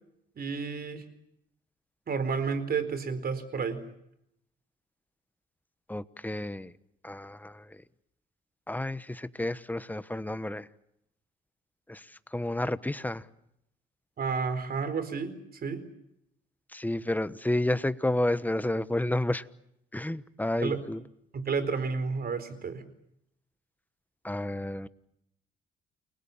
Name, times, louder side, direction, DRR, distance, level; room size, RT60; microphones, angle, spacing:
voice 1, 0.4-1.0 2.1-3.8 14.2-15.3 15.6-15.8 20.6-20.8 21.3-22.8, right 5 dB, 50° right, 4.4 m, -31 dB
voice 2, 5.9-6.7 7.0-7.8 8.7-10.7 11.9-12.0 12.3-13.2 16.7-19.4 19.9-21.0 24.2-24.9, left 1 dB, 10° left, 1.2 m, -30 dB
30.0 x 21.5 x 7.3 m
cardioid pair, 90°, 20 cm